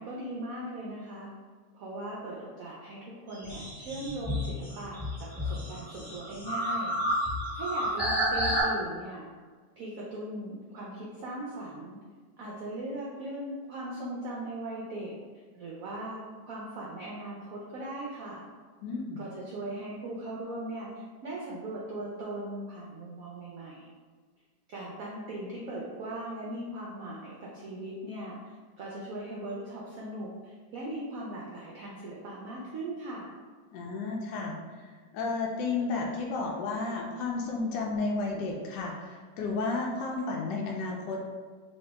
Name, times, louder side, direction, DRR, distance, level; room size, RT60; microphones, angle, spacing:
voice 1, 0.0-1.3 1.7-7.0 7.5-9.3 9.8-12.0 12.4-15.1 15.5-18.4 19.2-23.9 24.7-33.3, right 1 dB, 75° right, -4 dB, 0.8 m, -39 dB
sound 1, 3.3-8.6, equal, 15° left, 1.0 m, -31 dB
voice 2, 18.8-19.2 33.7-34.6 35.1-41.2, left 3 dB, 75° left, -1 dB, 1.2 m, -32 dB
3.1 x 2.7 x 3.3 m, 1.5 s
omnidirectional pair, 2.0 m